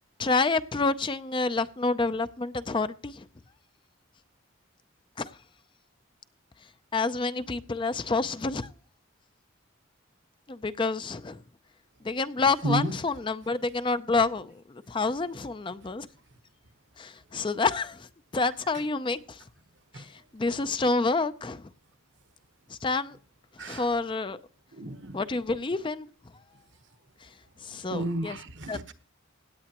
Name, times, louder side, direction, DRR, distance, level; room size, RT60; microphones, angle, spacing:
voice 1, 0.2-3.3 5.2-5.4 6.9-8.7 10.5-11.4 12.0-16.1 17.0-18.1 18.3-19.4 19.9-21.7 22.7-23.2 23.6-24.4 25.1-26.1 27.2-27.3 27.6-28.4 28.7-28.8, left 3 dB, 25° left, 0.4 m, -28 dB
voice 2, 12.6-13.0 19.9-20.0 23.6-23.9 24.7-25.2 27.9-28.9, right 1 dB, 60° right, 1.2 m, -31 dB
17.0 x 9.7 x 2.9 m
head